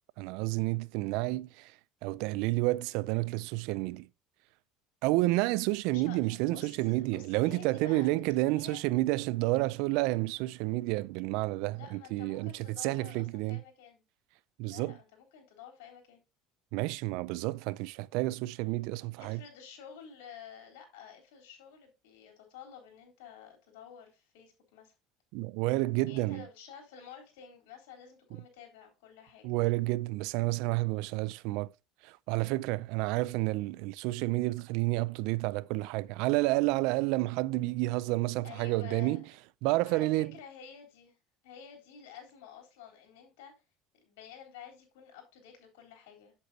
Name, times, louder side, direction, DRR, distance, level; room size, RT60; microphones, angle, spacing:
voice 1, 0.2-1.8 2.0-4.1 5.0-13.6 14.6-15.0 16.7-19.4 25.3-26.5 29.4-31.7 32.0-39.2 39.6-40.3, right 20 dB, 75° right, 0.4 m, -30 dB
voice 2, 5.9-8.1 8.4-8.8 11.7-14.0 14.7-16.2 19.2-24.9 26.1-29.5 31.5-31.6 38.4-39.3 39.9-41.2 41.4-43.5 44.0-46.3, left 8 dB, 85° left, 3.8 m, -51 dB
8.2 x 8.0 x 2.8 m
supercardioid pair, 115°, 0 cm